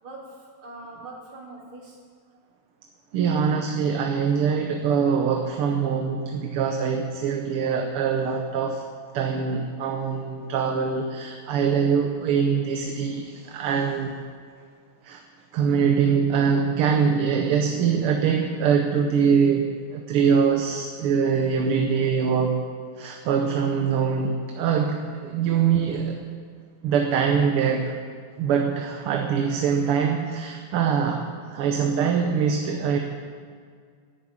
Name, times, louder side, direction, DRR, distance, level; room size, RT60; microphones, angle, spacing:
voice 1, 0.0-2.1, right 2 dB, 70° right, -4 dB, 4.0 m, -42 dB
voice 2, 3.1-8.8 9.1-14.1 15.0-15.2 15.5-22.6 23.0-26.2 26.8-28.0 28.4-33.0, right 6 dB, 85° right, 3 dB, 1.9 m, -23 dB
11.5 x 10.5 x 8.7 m, 2.1 s
omnidirectional pair, 2.4 m